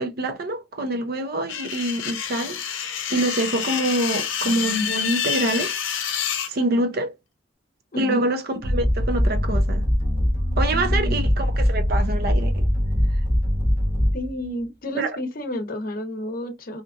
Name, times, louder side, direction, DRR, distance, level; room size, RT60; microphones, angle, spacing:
voice 1, 0.0-2.6 3.1-6.2 6.5-7.1 8.0-9.9 10.6-12.7 15.0-15.2, right 1 dB, 55° right, 0.5 m, -26 dB
sound 1, 1.5-6.5, left 8 dB, 85° left, 0.6 m, -28 dB
voice 2, 7.9-8.3 10.7-11.2 14.1-16.8, equal, 50° left, 0.7 m, -31 dB
sound 2, 8.6-14.4, equal, 30° right, 0.9 m, -22 dB
2.8 x 2.4 x 2.4 m
head